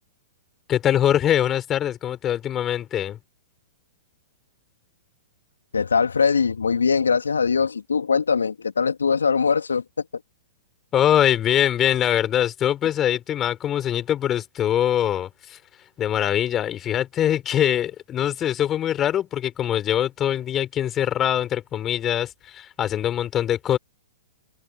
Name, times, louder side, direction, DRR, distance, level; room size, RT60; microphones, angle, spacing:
voice 1, 0.7-3.2 10.9-15.6 16.0-23.8, left 11 dB, 25° left, 4.2 m, -23 dB
voice 2, 5.7-10.0, left 5 dB, 75° left, 3.0 m, -21 dB
figure-of-eight pair, 110°, 0 cm